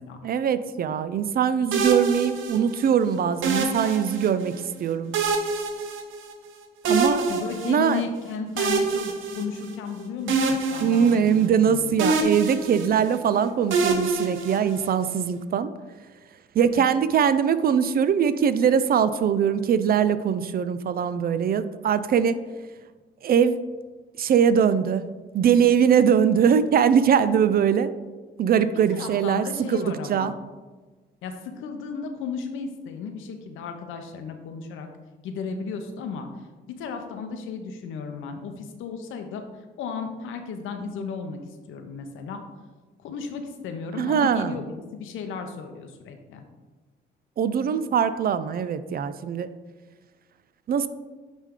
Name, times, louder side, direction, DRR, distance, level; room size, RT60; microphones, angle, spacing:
voice 1, 0.2-4.5 4.8-5.1 6.8-7.2 7.7-8.0 10.8-15.7 16.5-22.4 23.2-23.6 24.2-25.0 25.3-27.9 28.4-30.3 44.0-44.6 47.4-49.5 50.7-50.9, right 7 dB, 50° right, 13 dB, 0.4 m, -22 dB
sound 1, 1.7-2.9 3.4-4.6 5.1-6.5 6.8-8.0 8.6-9.9 10.3-11.7 12.0-13.2 13.7-15.1, right 3 dB, 80° right, 0.8 m, -26 dB
voice 2, 7.3-12.0 28.9-30.3 31.2-34.9 35.2-36.3 36.7-39.4 39.8-41.4 41.7-42.4 43.0-46.4, left 5 dB, 85° left, 6 dB, 0.8 m, -34 dB
8.8 x 3.3 x 3.7 m, 1.3 s
cardioid pair, 90°, 20 cm